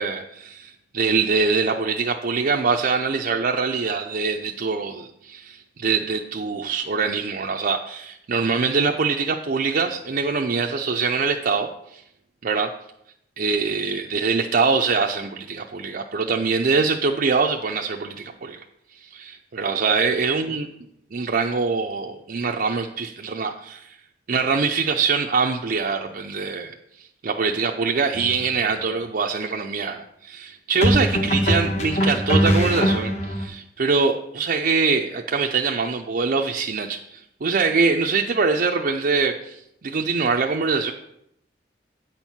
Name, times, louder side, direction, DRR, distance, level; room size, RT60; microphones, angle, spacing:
voice 1, 0.0-12.0 12.4-12.7 13.4-18.6 19.0-20.7 21.1-23.9 24.3-26.7 27.2-40.9, right 4 dB, 50° right, 2 dB, 0.5 m, -23 dB
sound 1, 28.2-28.4 30.8-33.5, equal, 40° left, 1.0 m, -21 dB
8.5 x 4.5 x 7.2 m, 0.78 s
head